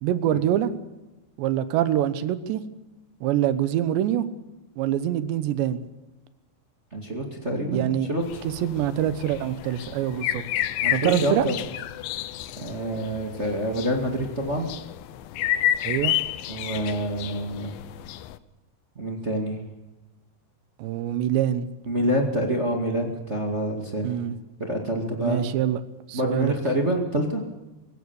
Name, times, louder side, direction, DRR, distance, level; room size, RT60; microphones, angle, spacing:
voice 1, 0.0-0.7 1.4-2.6 3.2-4.3 4.8-5.8 7.7-8.1 8.6-10.4 10.9-11.4 15.8-16.2 20.8-21.7 24.0-24.4 25.2-25.8 26.1-26.5, right 11 dB, 80° right, 13 dB, 3.3 m, -24 dB
voice 2, 6.9-8.4 10.8-11.5 12.6-14.7 16.5-17.7 18.9-19.6 21.8-24.2 24.6-25.4 26.1-27.4, equal, 30° right, 3 dB, 1.2 m, -27 dB
sound 1, 8.2-18.4, left 12 dB, 75° left, 2.2 m, -31 dB
24.0 x 16.5 x 7.1 m, 1.1 s
omnidirectional pair, 5.1 m